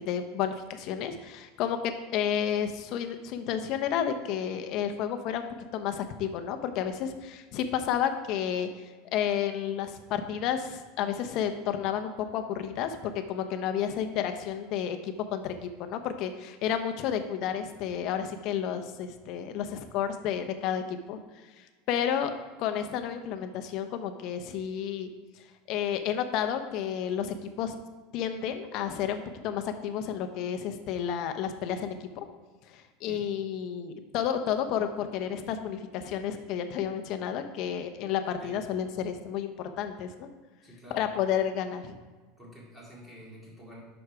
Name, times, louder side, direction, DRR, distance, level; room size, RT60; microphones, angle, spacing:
voice 1, 0.1-5.5 5.7-8.9 9.1-21.2 21.6-22.3 22.6-25.1 25.7-27.7 28.1-32.2 32.7-40.3 40.9-41.9, left 9 dB, 50° left, 8 dB, 0.8 m, -31 dB
voice 2, 40.6-41.1 42.4-43.8, equal, 5° right, -5 dB, 2.5 m, -48 dB
7.9 x 6.3 x 4.7 m, 1.3 s
supercardioid pair, 150°, 0 cm